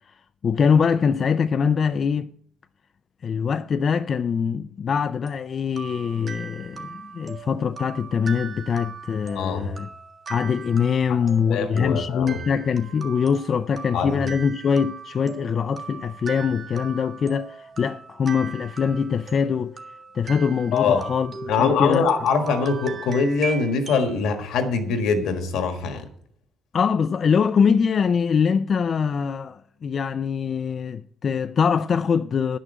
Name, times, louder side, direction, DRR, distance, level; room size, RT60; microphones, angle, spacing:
voice 1, 0.4-2.3 3.2-9.9 10.3-19.8 20.1-22.1 26.7-32.6, left 6 dB, 50° left, 0.4 m, -23 dB
sound 1, 5.3-24.1, right 5 dB, 40° right, 1.6 m, -39 dB
voice 2, 9.3-9.7 11.1-11.2 11.5-12.4 13.9-14.3 20.7-21.0 21.5-26.0, left 5 dB, 85° left, 1.6 m, -23 dB
10.5 x 6.2 x 7.9 m
cardioid pair, 90°, 0 cm